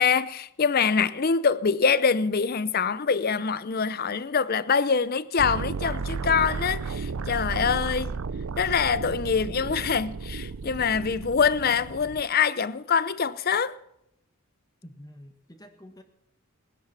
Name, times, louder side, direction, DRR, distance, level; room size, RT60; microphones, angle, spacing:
voice 1, 0.0-8.1 8.6-13.8, left 6 dB, 40° left, 0.6 m, -24 dB
sound 1, 5.4-12.2, right 4 dB, 65° right, 0.5 m, -33 dB
voice 2, 14.8-16.0, left 1 dB, 15° left, 1.5 m, -48 dB
20.0 x 10.5 x 5.8 m
head